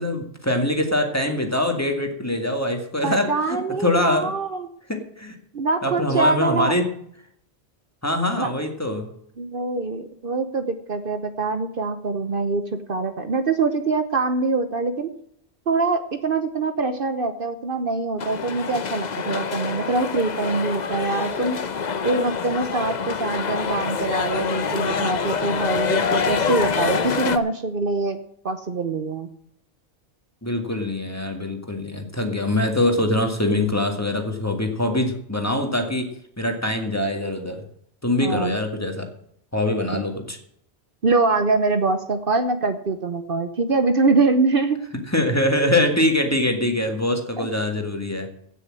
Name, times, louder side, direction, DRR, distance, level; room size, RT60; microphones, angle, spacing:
voice 1, 0.0-4.3 4.9-5.4 5.8-6.9 8.0-9.1 30.4-36.1 36.4-37.6 38.0-39.1 39.5-40.4 45.1-48.3, left 1 dB, 15° left, 4 dB, 2.0 m, -23 dB
voice 2, 3.0-4.7 5.5-6.7 8.3-8.5 9.4-12.6 12.9-15.1 15.7-21.6 22.0-28.2 28.4-29.3 38.2-38.6 39.9-40.0 41.0-44.8 47.4-47.5, right 3 dB, 55° right, 9 dB, 1.1 m, -24 dB
sound 1, 18.2-27.4, left 6 dB, 45° left, 0.9 m, -26 dB
16.5 x 6.5 x 7.5 m, 0.70 s
omnidirectional pair, 1.1 m